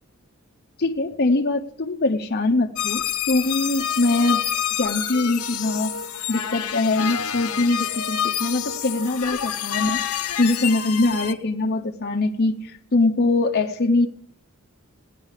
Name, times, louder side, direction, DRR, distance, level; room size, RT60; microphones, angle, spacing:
voice 1, 0.8-4.4 4.8-5.9 6.3-10.0 10.4-14.1, left 2 dB, 45° left, 2 dB, 0.7 m, -22 dB
sound 1, 2.8-11.3, left 9 dB, 85° left, 0.9 m, -27 dB
16.5 x 10.0 x 6.5 m, 0.68 s
head